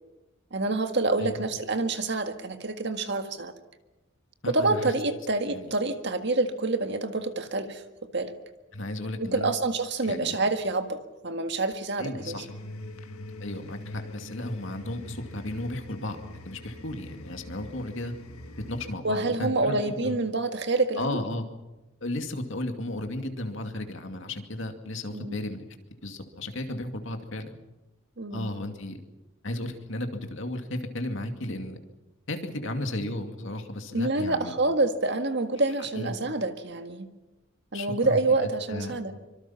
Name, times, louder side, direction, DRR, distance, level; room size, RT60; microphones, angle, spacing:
voice 1, 0.5-3.5 4.5-8.3 9.2-12.4 19.0-21.2 25.1-25.4 28.2-28.5 33.9-37.1 37.7-39.1, right 2 dB, 50° right, 7 dB, 1.8 m, -27 dB
voice 2, 4.4-4.9 5.5-5.7 8.7-9.5 10.0-10.3 12.0-12.5 13.4-18.1 18.7-20.2 21.0-21.4 22.0-25.6 26.0-27.6 28.3-29.0 29.4-31.8 32.3-34.5 35.9-36.2 37.7-38.2 38.7-38.9, left 1 dB, 60° left, 5 dB, 2.4 m, -34 dB
sound 1, 12.2-19.0, left 1 dB, 85° left, 1.9 m, -43 dB
25.0 x 24.5 x 5.8 m, 1.0 s
head